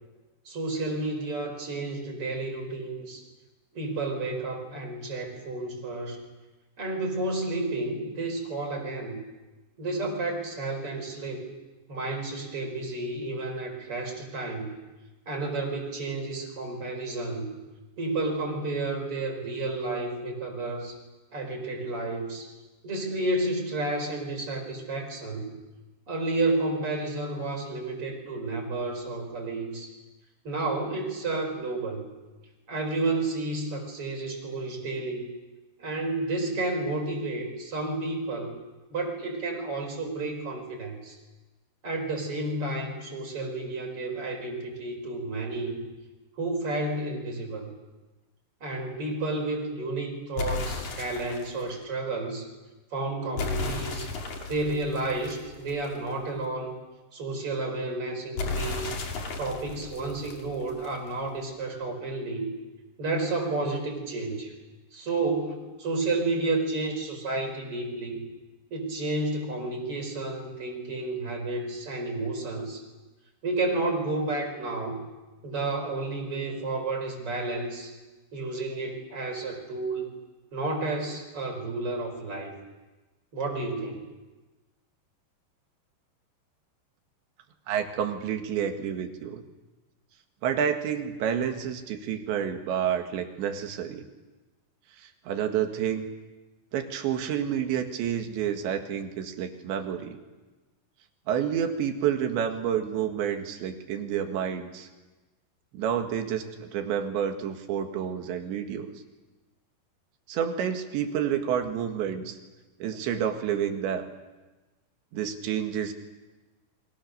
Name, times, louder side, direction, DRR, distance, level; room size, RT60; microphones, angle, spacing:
voice 1, 0.5-3.2 3.7-6.2 6.8-9.2 9.8-11.5 11.9-14.7 15.3-17.5 18.0-21.0 21.3-22.5 22.8-25.5 26.1-29.9 30.4-32.1 32.7-35.3 35.8-38.6 38.9-41.2 41.8-45.8 46.4-47.7 48.6-52.5 52.9-54.1 54.5-56.8 57.1-59.0 59.4-62.5 63.0-64.5 64.9-68.2 68.7-72.8 73.4-75.1 75.4-77.9 78.3-80.1 80.5-82.5 83.3-84.0, right 2 dB, 30° right, 2 dB, 6.0 m, -31 dB
sound 1, 50.4-51.6 53.4-56.1 58.4-61.1, left 3 dB, 50° left, 3.6 m, -34 dB
voice 2, 87.7-89.5 90.4-94.0 95.0-96.1 96.7-100.2 101.3-104.9 105.7-108.9 110.3-112.4 112.8-114.1 115.1-115.9, right 8 dB, 85° right, 5 dB, 4.1 m, -29 dB
29.5 x 24.5 x 6.8 m, 1.2 s
omnidirectional pair, 5.0 m